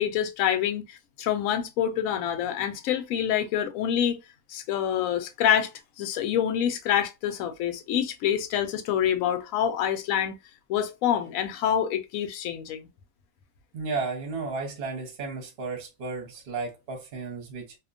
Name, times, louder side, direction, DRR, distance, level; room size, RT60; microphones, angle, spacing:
voice 1, 0.0-4.2 4.5-5.7 6.0-10.4 10.7-12.9, left 9 dB, 70° left, 0.8 m, -26 dB
voice 2, 13.7-17.7, right 4 dB, 50° right, 0.8 m, -33 dB
2.8 x 2.2 x 2.5 m
omnidirectional pair, 1.9 m